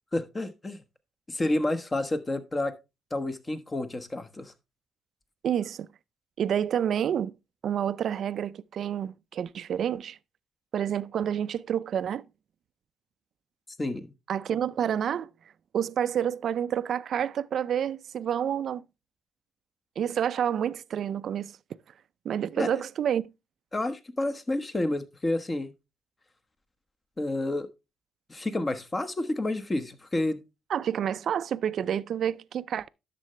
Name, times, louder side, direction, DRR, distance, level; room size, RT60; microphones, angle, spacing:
voice 1, 0.1-0.8 1.3-2.7 3.1-4.5 13.8-14.1 22.6-22.8 23.7-25.7 27.2-27.7 28.3-30.4, left 2 dB, 25° left, 1.2 m, -29 dB
voice 2, 5.4-5.9 6.4-7.3 7.6-10.2 10.7-12.2 14.3-15.3 15.7-18.8 20.0-21.5 22.2-23.3 30.7-32.9, right 9 dB, 65° right, 0.4 m, -29 dB
11.0 x 6.8 x 3.2 m
cardioid pair, 90°, 0 cm